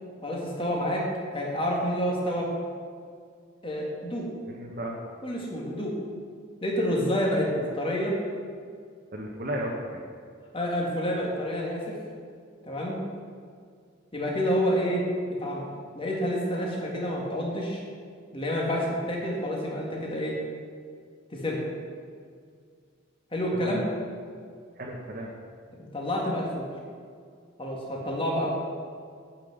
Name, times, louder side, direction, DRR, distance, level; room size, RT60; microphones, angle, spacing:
voice 1, 0.2-1.1 1.3-2.5 3.6-4.3 5.2-5.9 6.6-8.2 10.5-12.0 12.6-13.0 14.1-15.7 15.9-17.8 18.3-20.4 21.3-21.6 23.3-23.8 25.9-26.7 27.6-28.5, equal, 30° left, -2 dB, 1.9 m, -28 dB
voice 2, 4.5-5.0 7.6-7.7 9.1-9.7 23.5-23.8 24.7-25.3, right 1 dB, 50° right, -3 dB, 1.1 m, -34 dB
8.7 x 5.9 x 8.0 m, 2.1 s
head